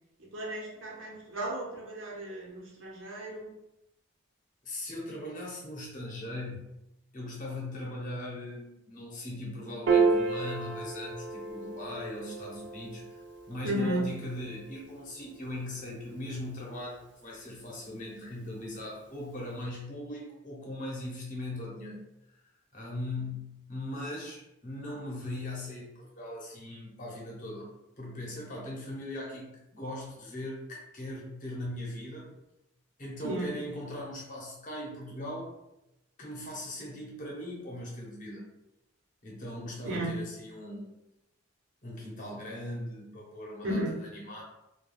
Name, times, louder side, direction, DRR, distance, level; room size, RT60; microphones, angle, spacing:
voice 1, 0.3-3.5 13.6-14.0 33.2-33.5 39.8-40.1 43.6-43.9, right 1 dB, 85° right, -3 dB, 0.9 m, -34 dB
voice 2, 4.6-6.6 7.1-22.0 22.7-32.3 33.0-35.5 36.2-38.5 39.2-40.9 41.8-44.4, left 1 dB, 40° left, -3 dB, 0.8 m, -39 dB
Piano, 9.9-16.5, right 4 dB, 60° right, 0.4 m, -32 dB
2.3 x 2.2 x 3.3 m, 0.88 s
head